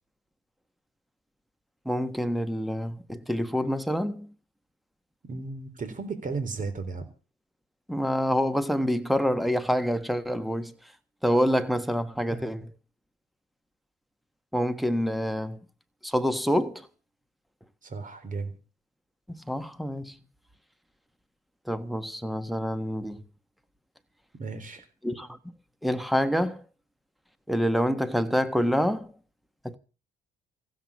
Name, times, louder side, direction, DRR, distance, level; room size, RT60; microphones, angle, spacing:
voice 1, 1.8-4.3 7.9-10.7 11.2-12.7 14.5-15.6 16.0-16.9 19.3-20.2 21.7-23.2 25.0-25.4 25.8-26.6 27.5-29.1 29.6-29.8, equal, ahead, 1.5 m, -27 dB
voice 2, 5.3-7.1 12.2-12.4 17.8-18.5 24.4-24.8, right 4 dB, 40° right, 3.9 m, -34 dB
15.5 x 7.9 x 8.5 m
cardioid pair, 90°, 20 cm